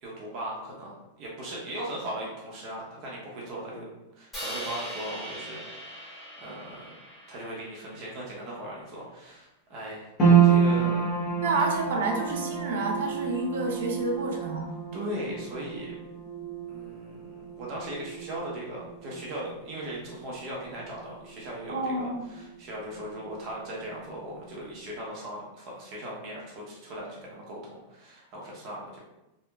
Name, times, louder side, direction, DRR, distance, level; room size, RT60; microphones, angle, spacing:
voice 1, 0.0-3.9 4.1-6.9 7.3-10.1 10.4-11.1 14.9-15.9 16.7-29.0, right 1 dB, 35° right, -4 dB, 0.8 m, -38 dB
Crash cymbal, 4.3-8.5, equal, 5° left, 1.1 m, -40 dB
sound 1, 10.2-22.6 22.9-23.8 24.3-24.4, right 7 dB, 20° left, 0.7 m, -28 dB
voice 2, 11.4-14.7 21.7-22.3, right 2 dB, 75° right, 2 dB, 0.6 m, -29 dB
2.8 x 2.2 x 2.3 m, 0.95 s
supercardioid pair, 160°, 0 cm